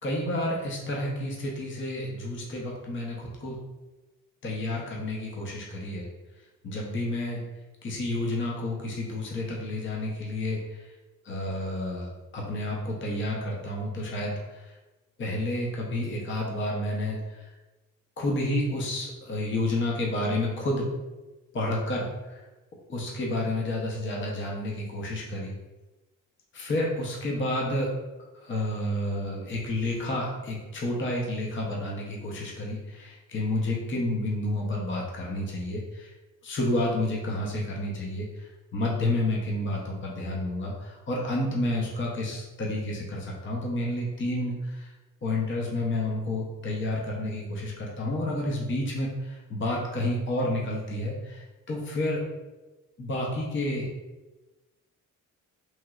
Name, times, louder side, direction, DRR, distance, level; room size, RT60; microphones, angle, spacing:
voice 1, 0.0-3.6 4.4-6.1 6.6-7.4 7.8-10.9 11.2-14.7 15.2-17.5 18.2-20.9 21.5-22.4 22.9-25.5 26.5-27.9 28.3-36.1 36.4-44.9 45.2-52.2 53.0-53.9, left 1 dB, 35° left, -2 dB, 0.7 m, -30 dB
3.0 x 2.8 x 2.3 m, 1.1 s
cardioid pair, 80°, 34 cm